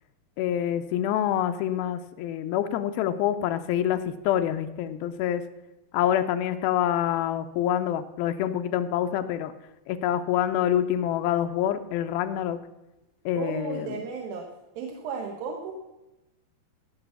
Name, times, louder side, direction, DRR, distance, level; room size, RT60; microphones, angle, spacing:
voice 1, 0.4-5.5 5.9-9.5 9.9-12.6 13.3-13.9, left 10 dB, 80° left, 9 dB, 2.4 m, -26 dB
voice 2, 13.3-14.5 14.8-15.7, right 5 dB, 75° right, 1 dB, 2.8 m, -34 dB
16.5 x 6.0 x 7.0 m, 0.99 s
omnidirectional pair, 4.4 m